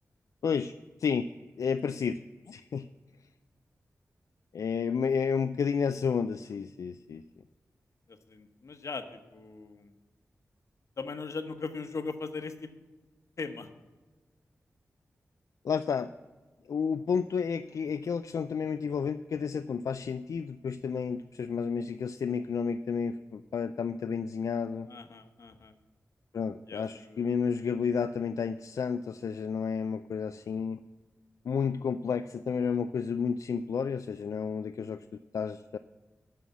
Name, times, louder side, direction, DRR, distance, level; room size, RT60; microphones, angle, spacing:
voice 1, 0.4-0.7 1.0-1.3 1.6-2.2 2.5-2.9 4.5-7.2 15.6-16.1 16.7-24.9 26.3-30.8 31.4-35.8, left 6 dB, 80° left, 10 dB, 0.3 m, -31 dB
voice 2, 8.1-9.9 11.0-12.7 13.4-13.7 24.9-25.7 26.7-27.3, left 4 dB, 65° left, 8 dB, 1.0 m, -39 dB
9.2 x 6.4 x 8.4 m, 1.2 s
wide cardioid pair, 135°, 6 cm